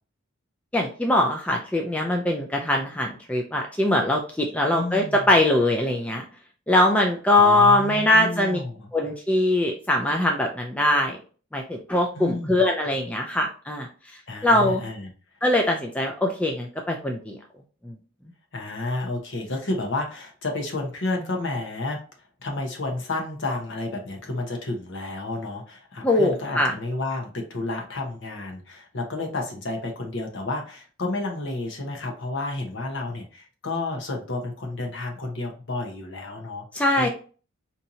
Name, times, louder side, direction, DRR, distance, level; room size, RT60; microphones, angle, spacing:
voice 1, 0.7-6.2 6.7-8.6 8.9-11.2 11.5-14.8 15.4-17.4 17.8-17.9 26.0-26.7 36.7-37.1, left 1 dB, 5° left, 0 dB, 0.3 m, -22 dB
voice 2, 4.7-5.2 7.4-8.9 12.1-12.6 14.3-15.1 18.5-22.0 22.4-36.7 37.0-37.1, left 2 dB, 55° left, 2 dB, 0.9 m, -31 dB
4.3 x 2.8 x 2.6 m, 0.38 s
head